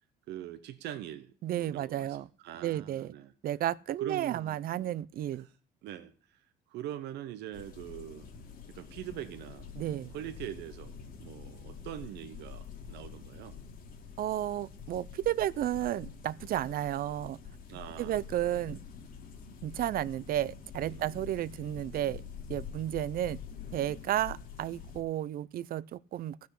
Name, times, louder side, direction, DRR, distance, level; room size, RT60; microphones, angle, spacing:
voice 1, 0.3-2.2 2.4-3.3 4.0-5.0 5.3-5.5 5.8-8.3 8.7-13.6 17.7-18.2 20.9-21.2 21.9-22.3, right 12 dB, 80° right, 1.0 m, -43 dB
voice 2, 1.4-2.3 2.6-3.1 3.4-5.5 9.8-10.1 14.2-17.4 18.0-18.8 19.6-22.2 22.5-23.4 23.7-26.5, right 12 dB, 60° right, 0.6 m, -32 dB
sound 1, 7.5-25.0, left 6 dB, 55° left, 2.6 m, -47 dB
15.0 x 6.4 x 8.4 m
cardioid pair, 110°, 17 cm